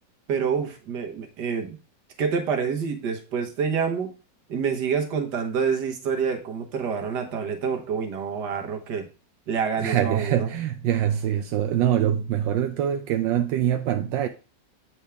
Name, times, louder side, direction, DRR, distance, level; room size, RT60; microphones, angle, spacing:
voice 1, 0.3-1.8 2.2-4.1 4.5-9.1 9.5-10.5, right 6 dB, 70° right, 1.7 m, -27 dB
voice 2, 9.8-14.3, right 10 dB, 85° right, 1.3 m, -24 dB
8.2 x 4.5 x 3.4 m
omnidirectional pair, 2.0 m